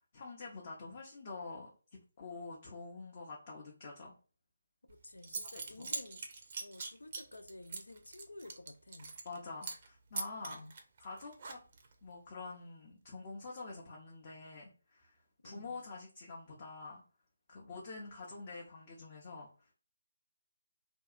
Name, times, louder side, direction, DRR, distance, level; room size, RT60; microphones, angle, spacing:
voice 1, 0.1-4.2 5.8-5.9 9.2-10.6 11.0-11.6 12.0-17.0 17.5-19.7, left 3 dB, 35° left, 0.6 m, -47 dB
voice 2, 4.8-6.3 6.6-9.1 10.5-10.7 15.4-15.8, left 2 dB, 85° left, 0.3 m, -52 dB
Zipper (clothing) / Coin (dropping), 4.9-5.0 5.2-9.4 9.6-9.9 10.1-11.9, right 4 dB, 45° right, 0.5 m, -42 dB
2.6 x 2.3 x 2.4 m
figure-of-eight pair, 155°, 0 cm